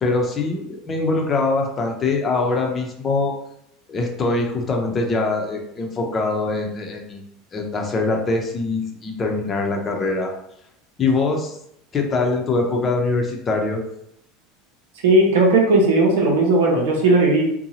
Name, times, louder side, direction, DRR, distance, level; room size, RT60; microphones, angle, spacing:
voice 1, 0.0-3.3 3.9-7.2 7.5-10.3 11.0-11.6 11.9-13.8, left 3 dB, 30° left, 1 dB, 0.7 m, -23 dB
voice 2, 15.0-17.4, right 2 dB, 75° right, 0 dB, 0.7 m, -16 dB
2.8 x 2.2 x 2.8 m, 0.77 s
hypercardioid pair, 85°, 0 cm